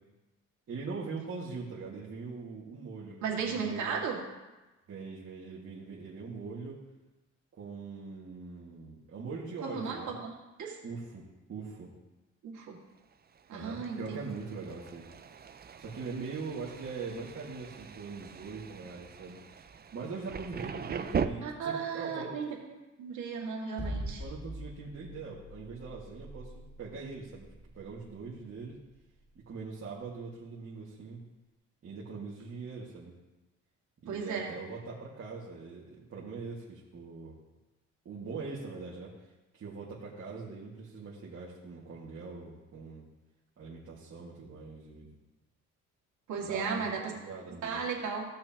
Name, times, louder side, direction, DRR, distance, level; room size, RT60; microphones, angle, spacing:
voice 1, 0.7-4.0 4.9-6.8 7.5-10.2 10.8-11.9 13.5-15.1 15.8-19.7 19.9-22.4 24.2-26.5 26.8-28.8 29.5-31.2 31.8-33.2 34.0-37.4 38.1-39.1 39.5-43.1 43.6-45.1 46.4-47.9, right 4 dB, 50° right, -6 dB, 2.0 m, -42 dB
voice 2, 3.2-4.2 9.6-10.8 12.4-12.8 13.5-14.2 21.4-22.5 23.0-24.2 34.1-34.5 46.3-47.1 47.6-48.2, right 6 dB, 70° right, -2 dB, 2.3 m, -35 dB
Thunder, 13.1-21.3, right 7 dB, 30° right, 0.5 m, -40 dB
sound 1, 23.8-29.9, equal, 15° left, 1.8 m, -43 dB
16.0 x 6.3 x 3.0 m, 1.1 s
cardioid pair, 90°, 30 cm